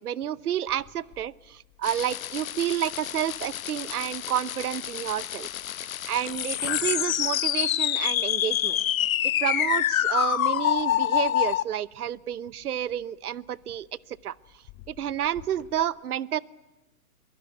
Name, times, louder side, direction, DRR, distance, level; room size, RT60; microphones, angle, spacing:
voice 1, 0.0-5.5 5.7-8.8 9.2-14.3 14.9-16.4, right 10 dB, 75° right, 21 dB, 0.9 m, -30 dB
sound 1, 0.7-15.8, left 14 dB, 25° left, 2.0 m, -48 dB
sound 2, 1.8-11.6, left 12 dB, 65° left, 0.8 m, -27 dB
23.0 x 22.5 x 9.5 m, 0.98 s
hypercardioid pair, 135°, 45 cm